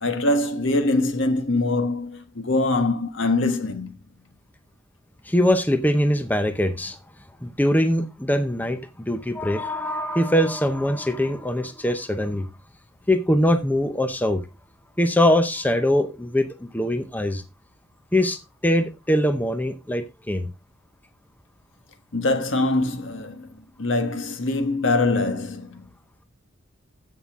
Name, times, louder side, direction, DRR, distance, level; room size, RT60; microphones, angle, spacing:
voice 1, 0.0-3.9 22.1-25.8, left 2 dB, 65° left, 1.5 m, -23 dB
voice 2, 5.3-7.0 7.4-12.5 13.1-14.4 15.0-17.4 18.1-20.5, left 1 dB, 10° left, 0.7 m, -22 dB
14.5 x 5.6 x 3.6 m
head